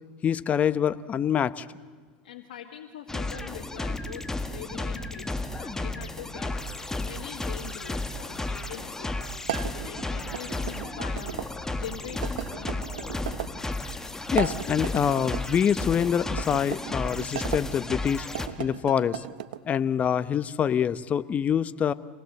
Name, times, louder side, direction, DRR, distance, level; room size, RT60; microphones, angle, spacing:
voice 1, 0.2-1.7 14.3-18.3 18.6-19.2 19.7-21.9, left 8 dB, 30° left, 15 dB, 0.9 m, -25 dB
voice 2, 2.2-13.2, left 10 dB, 80° left, 1 dB, 2.0 m, -43 dB
sound 1, 3.1-18.5, left 2 dB, 10° left, 1.6 m, -33 dB
sound 2, 9.4-11.5 12.2-13.5 14.2-15.4 16.3-17.6 18.2-19.6, right 11 dB, 85° right, 1.1 m, -36 dB
26.0 x 19.0 x 7.9 m, 1.5 s
hypercardioid pair, 105°, 5 cm